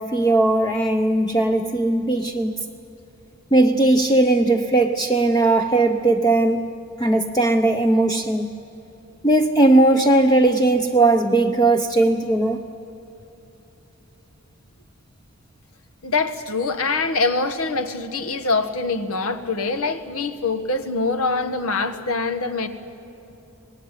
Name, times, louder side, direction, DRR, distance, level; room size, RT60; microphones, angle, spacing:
voice 1, 0.0-2.5 3.5-6.7 7.0-8.5 9.2-12.6, right 2 dB, 20° left, 5 dB, 0.7 m, -18 dB
voice 2, 16.0-22.7, left 3 dB, 80° left, 10 dB, 1.5 m, -24 dB
25.5 x 19.5 x 9.8 m, 3.0 s
head